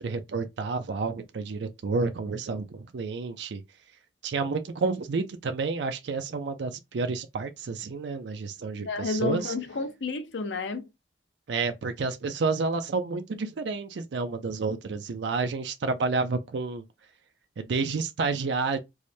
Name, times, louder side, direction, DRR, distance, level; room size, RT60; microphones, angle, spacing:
voice 1, 0.0-3.6 4.2-9.5 11.5-16.8 17.6-18.8, right 4 dB, 70° right, 0.4 m, -30 dB
voice 2, 8.8-10.8, left 3 dB, 90° left, 0.7 m, -31 dB
4.7 x 2.1 x 2.7 m
head